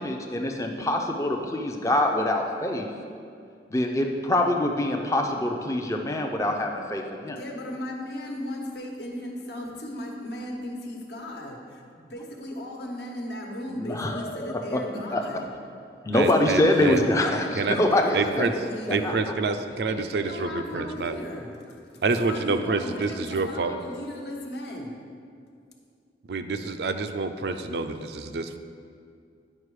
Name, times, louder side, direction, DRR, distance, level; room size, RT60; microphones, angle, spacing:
voice 1, 0.0-2.9 3.7-7.4 13.7-15.4 16.0-18.6 18.9-19.1, left 1 dB, 15° left, 2 dB, 0.5 m, -25 dB
voice 2, 7.3-15.5 16.3-19.2 20.1-24.9, left 1 dB, 70° left, 0 dB, 1.2 m, -37 dB
voice 3, 16.1-17.1 17.6-17.8 18.1-18.5 18.9-21.1 22.0-23.7 26.3-28.6, right 3 dB, 65° right, 8 dB, 0.4 m, -27 dB
9.8 x 5.2 x 4.8 m, 2.3 s
head